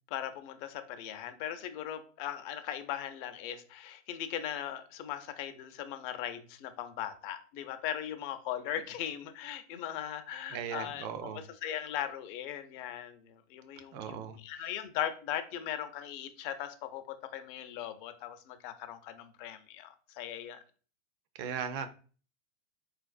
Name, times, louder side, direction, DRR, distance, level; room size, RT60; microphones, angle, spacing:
voice 1, 0.1-11.0 11.6-14.2 14.4-20.6, left 10 dB, 45° left, 0.6 m, -39 dB
voice 2, 10.5-11.4 13.9-14.7 21.3-21.9, right 7 dB, 30° right, 0.4 m, -38 dB
4.1 x 2.5 x 2.4 m
hypercardioid pair, 120°, 38 cm